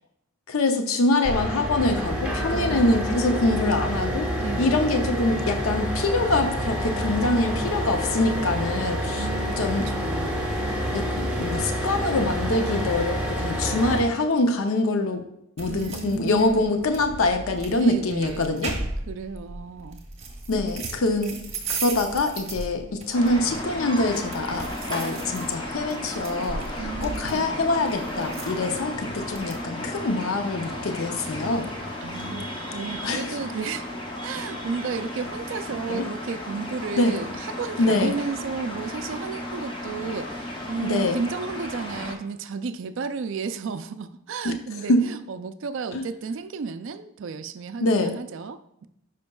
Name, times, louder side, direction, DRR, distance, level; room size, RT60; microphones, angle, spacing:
voice 1, 0.5-4.3 4.6-9.2 9.6-9.8 10.9-15.2 15.6-18.7 20.5-21.4 21.7-31.7 33.0-33.3 35.9-36.1 37.0-37.2 37.8-38.1 40.8-41.2 44.4-44.5 44.9-45.0 45.9-46.0 47.8-48.1, left 2 dB, 65° left, 6 dB, 0.6 m, -24 dB
sound 1, 1.2-14.0, equal, 5° right, 1.3 m, -28 dB
voice 2, 2.5-3.0 4.4-4.7 9.2-10.6 15.7-16.7 17.8-20.0 26.8-27.5 32.0-33.9 34.2-48.9, right 5 dB, 55° right, 12 dB, 0.3 m, -33 dB
sound 2, 15.6-29.6, right 3 dB, 30° right, 0.9 m, -37 dB
sound 3, 23.1-42.1, left 1 dB, 20° left, 0.7 m, -34 dB
10.5 x 5.1 x 2.3 m, 0.80 s
head